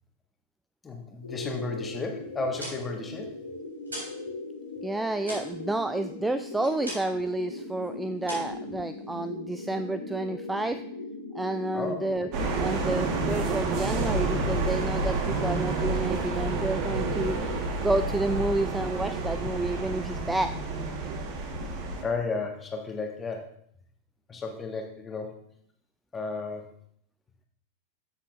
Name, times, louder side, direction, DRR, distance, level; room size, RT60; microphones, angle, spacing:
voice 1, 0.8-3.3 11.7-12.0 21.3-21.4 22.0-23.5 24.3-25.5 26.1-26.7, left 3 dB, 15° left, 3 dB, 1.5 m, -33 dB
sound 1, 1.2-17.6, left 2 dB, 75° left, 1.7 m, -39 dB
sound 2, 2.3-4.3 4.5-7.3 7.6-7.9 8.2-9.3, right 1 dB, 75° right, 3.8 m, -41 dB
voice 2, 4.8-10.8 11.3-12.3 12.6-20.5, right 2 dB, 5° right, 11 dB, 0.3 m, -30 dB
sound 3, 12.3-22.0, right 3 dB, 40° right, 1.4 m, -29 dB
13.0 x 7.4 x 2.5 m, 0.65 s
figure-of-eight pair, 90°, 0 cm